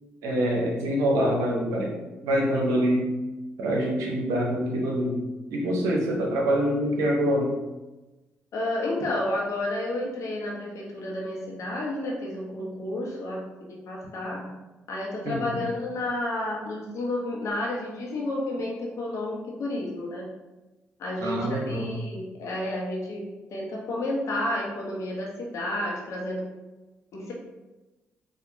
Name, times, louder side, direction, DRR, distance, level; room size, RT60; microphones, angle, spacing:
voice 1, 0.2-2.0 2.2-3.2 3.6-5.2 5.5-7.6 15.2-15.6 21.2-22.0, equal, 75° right, -1 dB, 0.7 m, -25 dB
voice 2, 8.5-13.5 13.9-14.5 14.9-20.3 21.0-26.4 27.1-27.3, left 1 dB, 60° left, -2 dB, 0.9 m, -31 dB
4.2 x 2.4 x 2.6 m, 1.1 s
hypercardioid pair, 45°, 6 cm